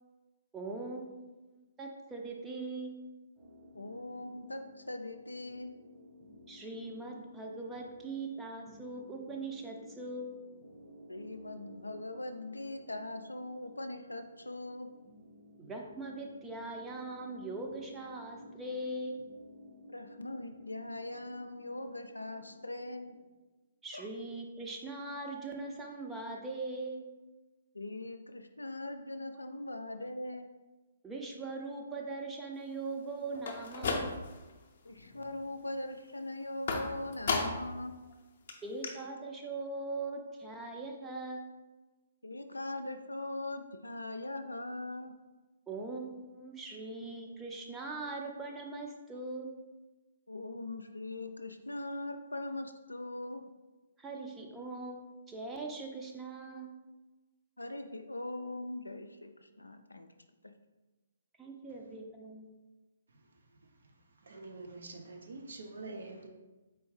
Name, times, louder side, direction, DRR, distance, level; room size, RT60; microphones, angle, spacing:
voice 1, 0.5-3.0 6.5-10.4 15.6-19.2 23.8-27.0 31.0-34.2 38.6-41.5 45.7-49.5 54.0-56.7 61.4-62.5, right 3 dB, 10° right, 0 dB, 0.6 m, -41 dB
sound 1, 3.4-23.3, left 1 dB, 35° right, 1.2 m, -55 dB
voice 2, 3.7-5.8 11.1-14.9 19.9-23.1 23.9-24.1 27.7-30.5 34.8-37.9 42.2-45.1 50.3-53.4 57.6-60.1 60.4-60.5, left 2 dB, 85° left, 7 dB, 0.3 m, -41 dB
sound 2, 33.3-34.5 34.9-35.4 36.7-37.8 38.1-38.2 38.5-38.6 38.8-38.9, left 4 dB, 50° left, 0.6 m, -34 dB
voice 3, 64.2-66.3, right 3 dB, 65° right, 2 dB, 0.7 m, -45 dB
4.4 x 3.4 x 3.2 m, 1.2 s
figure-of-eight pair, 130°, 0 cm